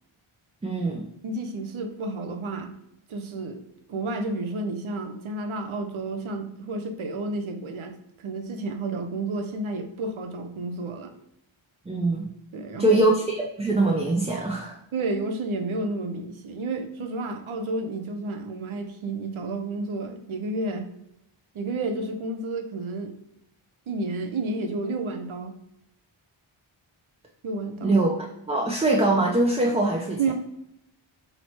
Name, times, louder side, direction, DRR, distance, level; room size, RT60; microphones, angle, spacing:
voice 1, 0.6-1.1 11.9-12.3 12.8-14.8 27.8-28.1 28.5-30.2, right 2 dB, 15° right, -1 dB, 0.3 m, -23 dB
voice 2, 1.2-2.7 3.1-3.6 3.9-11.1 12.5-13.0 14.9-20.9 21.5-23.2 23.9-25.6 27.4-28.0 30.2-30.3, right 2 dB, 75° right, 5 dB, 0.6 m, -31 dB
3.0 x 2.1 x 4.1 m, 0.79 s
wide cardioid pair, 75°, 50 cm